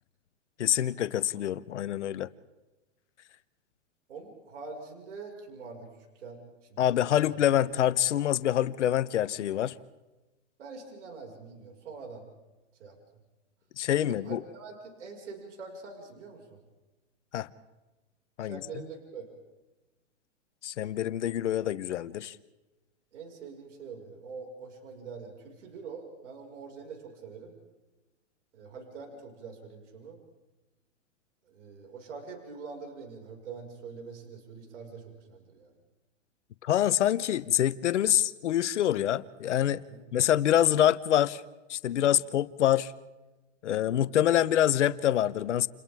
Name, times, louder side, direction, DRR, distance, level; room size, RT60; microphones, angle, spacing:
voice 1, 0.6-2.3 6.8-9.8 13.8-14.4 17.3-17.5 18.4-18.6 20.6-22.4 36.6-39.8 40.1-41.4 41.7-42.9 43.6-45.7, left 11 dB, 75° left, 1.1 m, -26 dB
voice 2, 4.1-5.9 6.2-7.3 10.6-12.2 12.8-13.0 14.0-16.6 18.4-19.3 23.1-27.5 28.5-30.2 31.5-35.7 39.9-40.1, right 4 dB, 75° right, 5.6 m, -44 dB
29.5 x 29.5 x 3.6 m
hypercardioid pair, 135°, 36 cm